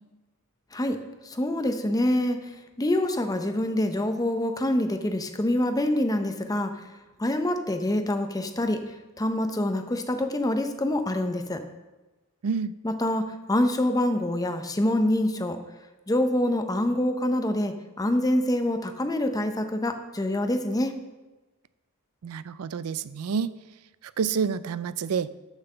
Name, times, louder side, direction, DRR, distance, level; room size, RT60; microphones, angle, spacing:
voice 1, 1.2-2.4 2.8-6.9 7.2-8.8 9.2-11.6 12.8-15.6 16.1-21.0, left 1 dB, 15° left, 7 dB, 0.6 m, -26 dB
voice 2, 12.4-12.7 22.2-23.5 24.0-25.4, right 6 dB, 75° right, 16 dB, 0.4 m, -28 dB
7.2 x 6.0 x 6.6 m, 1.1 s
head